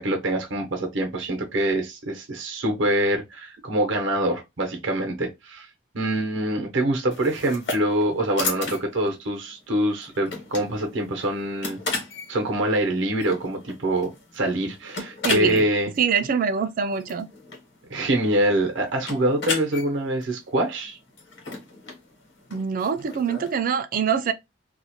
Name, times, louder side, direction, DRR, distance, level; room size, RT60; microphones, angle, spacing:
voice 1, 0.0-5.7 5.9-11.8 12.3-15.9 17.9-21.0, right 1 dB, 75° right, 0.7 m, -25 dB
sound 1, 7.1-23.6, left 3 dB, 65° left, 1.0 m, -36 dB
voice 2, 15.2-15.7 16.0-17.3 22.5-24.3, right 6 dB, 45° right, 0.3 m, -24 dB
2.4 x 2.0 x 2.8 m
head